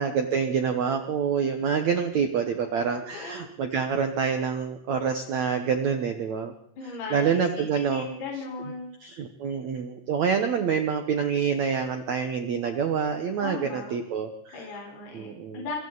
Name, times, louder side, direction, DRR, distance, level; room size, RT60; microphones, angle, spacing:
voice 1, 0.0-6.5 7.1-8.1 9.0-14.7 15.1-15.6, right 6 dB, 70° right, 7 dB, 1.7 m, -27 dB
voice 2, 6.8-7.2 7.5-8.9 13.4-13.9 14.5-15.8, left 4 dB, 65° left, -1 dB, 6.6 m, -37 dB
26.5 x 24.0 x 4.1 m, 0.73 s
omnidirectional pair, 5.0 m